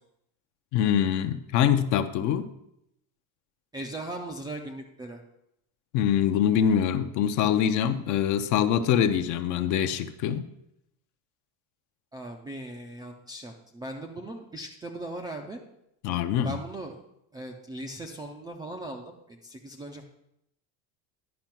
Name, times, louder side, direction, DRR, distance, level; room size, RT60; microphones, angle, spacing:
voice 1, 0.7-2.5 5.9-10.4 16.0-16.6, left 9 dB, 45° left, 11 dB, 0.6 m, -24 dB
voice 2, 3.7-5.2 12.1-15.6 16.4-17.0 17.3-20.0, right 1 dB, 10° right, 2 dB, 0.3 m, -38 dB
10.5 x 5.4 x 5.8 m, 0.79 s
cardioid pair, 150°, 42 cm